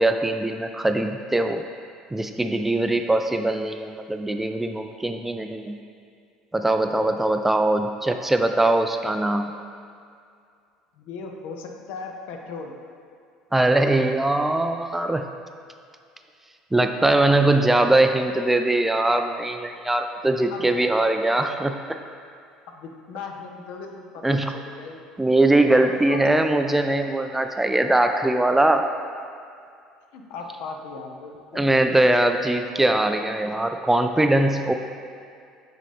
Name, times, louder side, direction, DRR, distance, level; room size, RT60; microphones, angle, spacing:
voice 1, 0.0-1.6 2.1-5.8 6.5-9.5 13.5-15.3 16.7-22.0 24.2-24.5 25.2-28.9 31.5-34.7, right 2 dB, 10° right, 6 dB, 0.3 m, -21 dB
voice 2, 6.8-7.2 11.0-12.7 20.5-20.7 22.7-25.0 25.9-26.2 30.1-31.7, left 4 dB, 60° left, 3 dB, 0.6 m, -38 dB
7.5 x 4.0 x 3.4 m, 2.3 s
figure-of-eight pair, 65°, 3 cm